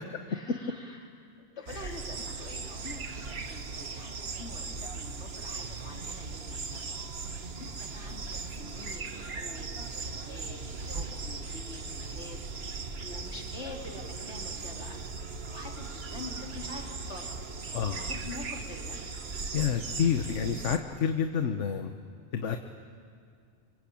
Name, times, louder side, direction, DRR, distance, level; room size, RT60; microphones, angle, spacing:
voice 1, 0.3-1.1 1.4-7.1 7.6-15.0 15.3-19.0, left 2 dB, 65° left, 1 dB, 3.7 m, -46 dB
sound 1, 1.7-20.8, right 4 dB, 55° right, 1.5 m, -38 dB
voice 2, 19.5-21.9 22.3-22.6, left 7 dB, 80° left, 6 dB, 1.4 m, -28 dB
26.5 x 25.0 x 8.7 m, 2.2 s
omnidirectional pair, 1.2 m